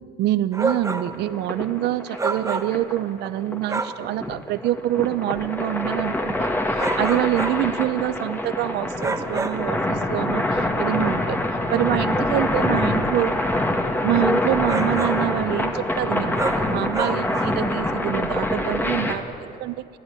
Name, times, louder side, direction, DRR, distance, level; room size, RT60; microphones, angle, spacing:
voice 1, 0.0-11.4 11.7-13.4 14.0-20.0, right 14 dB, 80° right, 14 dB, 0.8 m, -26 dB
sound 1, 0.5-1.2 2.2-2.9 3.7-4.1 6.8-7.7 9.0-9.7 14.7-15.3 16.3-17.6, right 3 dB, 15° right, 1.3 m, -28 dB
sound 2, 0.8-19.2, left 1 dB, 10° left, 2.1 m, -25 dB
29.5 x 11.5 x 10.0 m, 2.5 s
cardioid pair, 110°, 17 cm